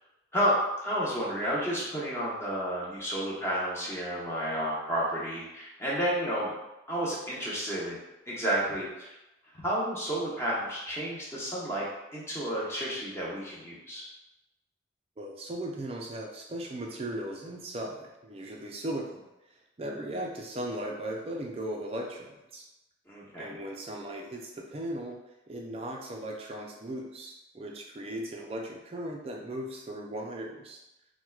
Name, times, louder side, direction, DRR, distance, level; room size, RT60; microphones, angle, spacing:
voice 1, 0.8-6.5 6.9-8.0 8.3-9.1 9.6-11.9 12.1-14.0 23.1-23.6, equal, 15° left, -7 dB, 0.8 m, -31 dB
voice 2, 15.2-19.2 19.8-22.7 23.4-25.2 25.5-30.8, right 1 dB, 30° right, 0 dB, 0.4 m, -37 dB
4.4 x 2.1 x 2.3 m, 0.94 s
head